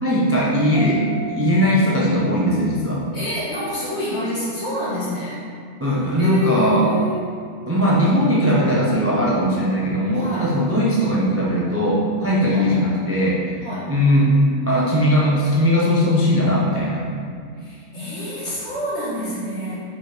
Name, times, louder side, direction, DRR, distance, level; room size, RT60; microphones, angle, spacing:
voice 1, 0.0-3.0 5.8-6.9 7.7-13.6 13.9-14.4 14.7-17.0, equal, 15° right, -5 dB, 0.5 m, -19 dB
sound 1, 0.8-4.1, right 1 dB, 65° right, 0.6 m, -39 dB
voice 2, 3.1-5.4 6.2-7.2 10.1-10.5 12.5-13.2 13.6-13.9 17.5-19.8, left 1 dB, 55° left, -8 dB, 2.0 m, -28 dB
5.1 x 4.9 x 4.5 m, 2.2 s
omnidirectional pair, 1.4 m